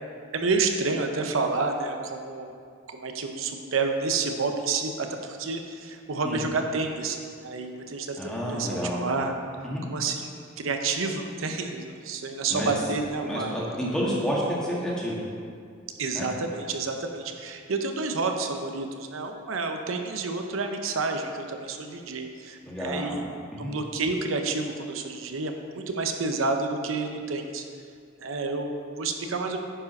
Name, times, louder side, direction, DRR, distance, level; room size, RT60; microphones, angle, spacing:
voice 1, 0.3-2.5 2.9-8.2 8.5-9.3 9.9-13.5 16.0-23.2 23.6-27.6 28.2-29.6, right 3 dB, 90° right, 5 dB, 0.7 m, -29 dB
voice 2, 8.2-9.0 9.6-9.8 12.5-12.7 13.2-15.2 16.1-16.3 22.6-23.2 23.5-23.7, equal, 5° left, -5 dB, 1.6 m, -29 dB
10.0 x 5.0 x 5.3 m, 2.2 s
head